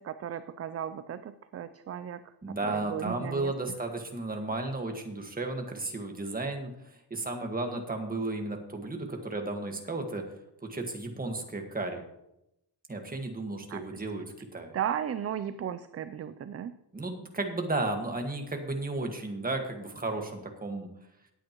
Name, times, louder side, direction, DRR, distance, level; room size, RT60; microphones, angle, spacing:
voice 1, 0.0-3.5 13.7-14.0 14.7-16.7, right 9 dB, 40° right, 12 dB, 0.4 m, -36 dB
voice 2, 2.4-10.2 10.6-12.0 12.9-14.8 16.9-20.9, right 2 dB, 20° right, 3 dB, 1.6 m, -34 dB
18.0 x 8.7 x 3.0 m, 0.85 s
wide cardioid pair, 145°, 41 cm